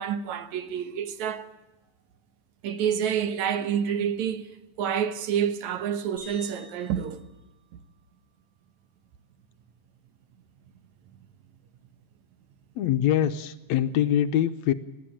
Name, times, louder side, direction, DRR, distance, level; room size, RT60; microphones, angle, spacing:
voice 1, 0.0-1.5 2.6-7.3, right 8 dB, 75° right, 2.5 m, -28 dB
sound 1, 6.2-8.5, left 1 dB, 45° right, 8.5 m, -51 dB
voice 2, 12.8-14.7, left 11 dB, 75° left, 2.0 m, -24 dB
21.5 x 15.0 x 8.9 m
omnidirectional pair, 3.3 m